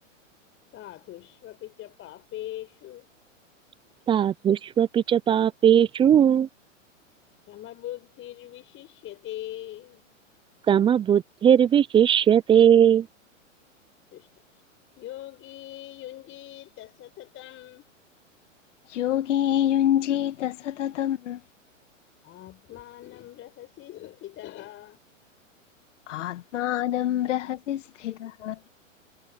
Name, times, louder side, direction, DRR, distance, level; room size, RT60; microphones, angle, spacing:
voice 1, 0.7-3.1 7.5-10.0 14.1-14.4 15.0-17.8 22.2-25.0, left 14 dB, 30° left, 6.0 m, -41 dB
voice 2, 4.1-6.5 10.7-13.1, right 9 dB, 15° right, 0.5 m, -19 dB
voice 3, 18.9-21.4 26.1-28.6, left 11 dB, 65° left, 2.0 m, -26 dB
hypercardioid pair, 115°, 39 cm